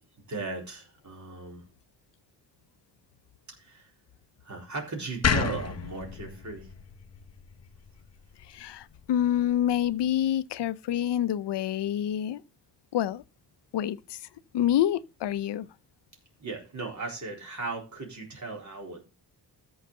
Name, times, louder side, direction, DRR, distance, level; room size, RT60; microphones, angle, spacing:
voice 1, 0.3-1.6 3.5-3.9 4.4-6.7 16.4-19.0, right 3 dB, 45° right, 4.0 m, -37 dB
sound 1, 5.2-8.4, left 6 dB, 40° left, 0.9 m, -30 dB
voice 2, 8.5-12.4 12.9-13.2 13.7-14.2 14.5-15.7, left 11 dB, 80° left, 0.7 m, -27 dB
13.5 x 4.9 x 6.7 m
wide cardioid pair, 140°, 41 cm